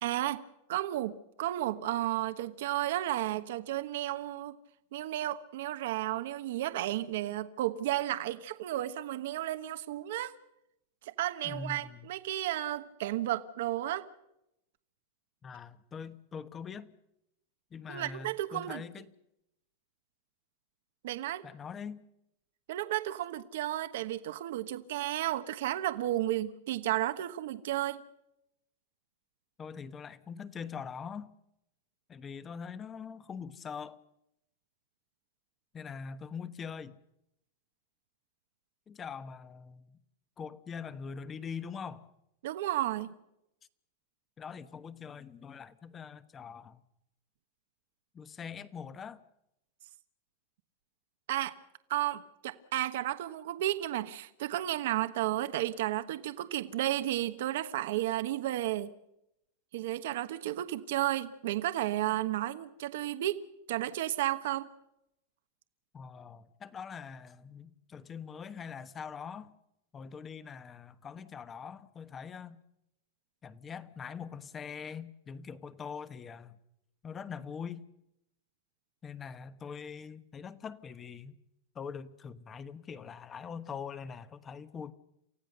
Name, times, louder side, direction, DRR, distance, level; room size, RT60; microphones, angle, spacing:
voice 1, 0.0-0.4 0.7-4.6 4.9-10.3 11.0-14.1 17.9-18.8 21.0-21.4 22.7-28.0 42.4-43.1 51.3-51.5 51.9-58.9 59.7-63.4 63.7-64.7, right 14 dB, 70° right, 1.2 m, -33 dB
voice 2, 11.4-12.1 15.4-16.9 17.7-19.1 21.4-22.0 29.6-31.3 32.1-34.0 35.7-37.0 38.9-40.0 40.4-42.1 44.4-46.8 48.1-49.2 65.9-69.5 69.9-72.6 73.4-76.6 77.0-77.8 79.0-81.3 81.7-84.9, left 6 dB, 20° left, 1.1 m, -43 dB
28.5 x 15.5 x 6.7 m
supercardioid pair, 150°, 0 cm